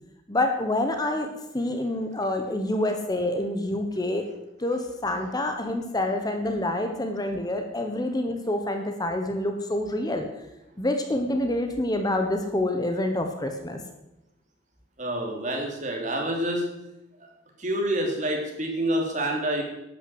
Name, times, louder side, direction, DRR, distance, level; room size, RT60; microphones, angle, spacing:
voice 1, 0.3-1.3 1.5-4.2 4.6-10.3 10.8-13.8, left 1 dB, 20° left, 5 dB, 1.2 m, -27 dB
voice 2, 15.0-16.6 17.6-19.6, right 1 dB, 40° right, 1 dB, 3.3 m, -27 dB
12.0 x 9.2 x 8.0 m, 0.93 s
head